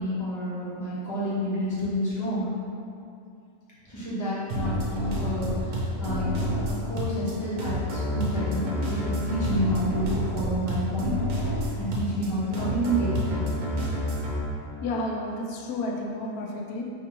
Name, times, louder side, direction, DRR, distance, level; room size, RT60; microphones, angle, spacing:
voice 1, 0.0-2.5 3.8-13.4, equal, 15° left, -10 dB, 1.0 m, -30 dB
sound 1, 4.5-14.4, equal, 85° right, 1.2 m, -29 dB
voice 2, 14.8-16.8, left 2 dB, 90° left, -1 dB, 1.1 m, -31 dB
3.4 x 2.9 x 4.6 m, 2.5 s
omnidirectional pair, 1.5 m